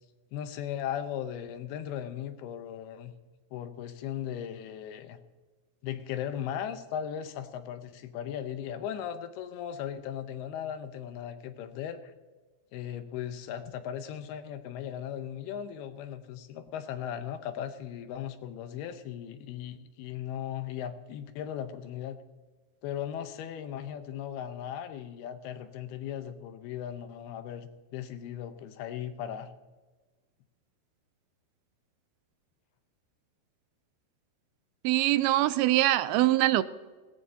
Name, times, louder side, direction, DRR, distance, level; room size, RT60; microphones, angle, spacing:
voice 1, 0.3-3.1 3.5-5.2 5.8-12.1 12.7-22.2 22.8-29.5, left 9 dB, 85° left, 9 dB, 2.9 m, -37 dB
voice 2, 34.8-36.6, right 16 dB, 85° right, 14 dB, 2.4 m, -23 dB
17.5 x 16.5 x 2.8 m, 1.3 s
omnidirectional pair, 4.5 m